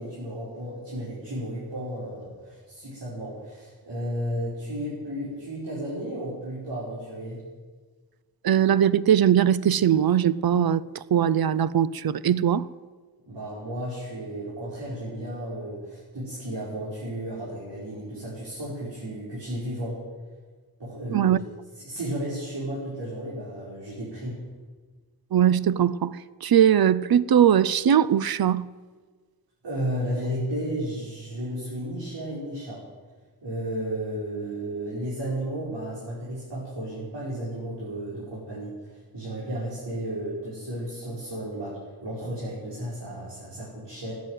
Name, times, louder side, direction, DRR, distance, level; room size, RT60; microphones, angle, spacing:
voice 1, 0.0-7.4 13.3-20.0 20.8-21.3 21.7-24.4 29.6-32.8 33.4-44.1, right 1 dB, 80° right, 5.3 m, -33 dB
voice 2, 8.4-12.7 21.1-21.4 25.3-28.7, right 9 dB, 60° right, 0.6 m, -21 dB
15.5 x 9.5 x 9.3 m
wide cardioid pair, 120°, 41 cm